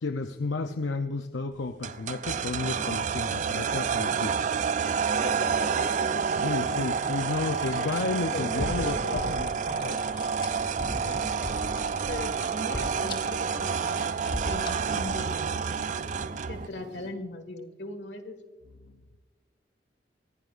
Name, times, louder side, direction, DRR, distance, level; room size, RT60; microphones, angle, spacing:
voice 1, 0.0-4.5 6.4-10.3 18.8-19.0, left 3 dB, 85° left, 7 dB, 0.6 m, -32 dB
sound 1, 1.8-16.7, right 6 dB, 45° right, 0.4 m, -29 dB
voice 2, 4.8-6.8 7.6-7.9 8.3-9.1 10.9-11.3 11.7-11.8 12.1-14.1 14.4-15.7 16.5-18.4, left 2 dB, 70° left, 8 dB, 1.8 m, -39 dB
sound 2, 8.6-16.7, left 1 dB, 25° left, 1.3 m, -39 dB
Motorcycle, 9.9-17.1, left 1 dB, 80° right, 6.1 m, -50 dB
24.5 x 16.0 x 2.5 m, 1.3 s
head